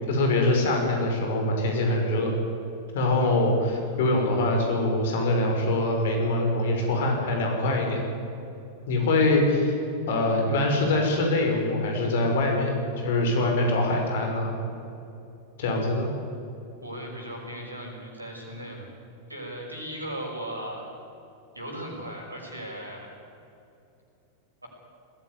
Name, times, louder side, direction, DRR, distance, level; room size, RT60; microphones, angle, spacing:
voice 1, 0.1-2.3 2.9-8.0 8.9-9.8 10.1-14.6 15.6-16.1, left 2 dB, 55° left, 2 dB, 5.6 m, -24 dB
voice 2, 16.8-18.9 19.3-20.8 21.5-23.1 24.6-24.7, right 1 dB, 85° right, 0 dB, 6.0 m, -37 dB
20.5 x 16.5 x 9.8 m, 2.7 s
figure-of-eight pair, 90°, 0 cm